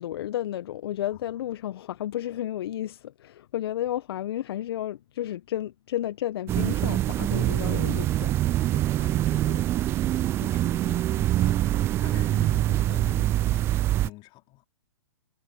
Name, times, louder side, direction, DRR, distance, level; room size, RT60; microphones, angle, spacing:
voice 1, 0.0-8.3, left 12 dB, 55° left, 1.4 m, -32 dB
sound 1, 6.5-14.1, right 13 dB, 15° right, 0.3 m, -24 dB
voice 2, 8.6-9.7 10.4-14.7, left 20 dB, 30° left, 4.2 m, -46 dB
hypercardioid pair, 120°, 15 cm